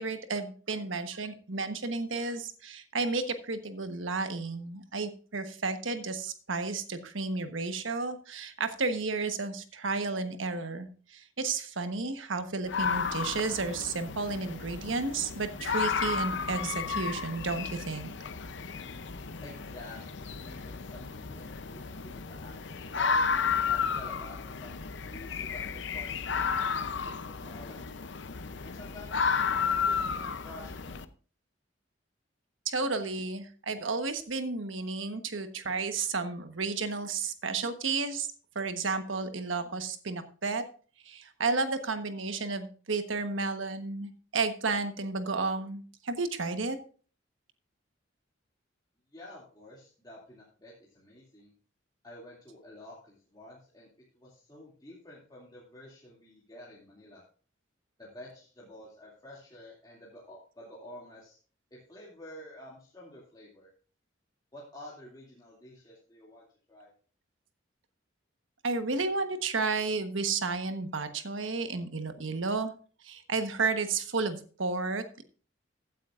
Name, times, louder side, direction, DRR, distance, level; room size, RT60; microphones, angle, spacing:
voice 1, 0.0-18.1 32.6-38.3 38.5-40.6 41.0-46.8 68.6-72.7 73.0-75.2, right 3 dB, 80° right, 8 dB, 1.2 m, -32 dB
sound 1, 12.7-31.0, left 6 dB, 65° left, 0.7 m, -33 dB
voice 2, 19.4-23.2 23.7-27.8 28.6-29.2 29.7-30.9 49.1-51.5 52.0-53.9 54.1-57.2 58.0-61.4 61.9-63.7 64.5-66.9, left 1 dB, 20° left, -6 dB, 2.4 m, -50 dB
15.5 x 9.2 x 2.5 m, 0.40 s
head